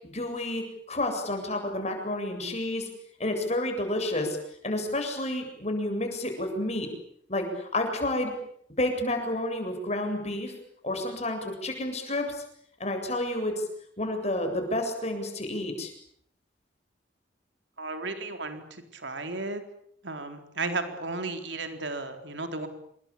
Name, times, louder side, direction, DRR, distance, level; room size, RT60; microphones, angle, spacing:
voice 1, 0.0-2.9 3.2-4.4 4.6-6.9 7.3-8.3 8.8-10.5 10.8-12.4 12.8-13.6 14.0-15.9, left 1 dB, 35° left, 5 dB, 7.8 m, -30 dB
voice 2, 17.8-19.6 20.0-22.7, right 3 dB, 70° right, 7 dB, 4.0 m, -34 dB
28.0 x 23.5 x 8.6 m, 0.67 s
head